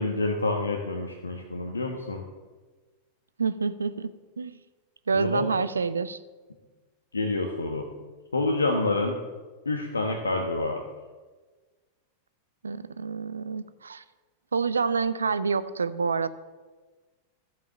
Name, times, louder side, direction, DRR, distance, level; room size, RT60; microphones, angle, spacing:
voice 1, 0.0-2.2 5.1-5.5 7.1-7.9 8.3-9.2 9.6-10.8, left 2 dB, 75° left, 3 dB, 1.2 m, -27 dB
voice 2, 3.4-4.6 5.1-6.2 12.6-14.0 14.5-16.3, right 5 dB, 75° right, 15 dB, 0.6 m, -28 dB
12.5 x 7.9 x 7.3 m, 1.3 s
figure-of-eight pair, 90°, 0 cm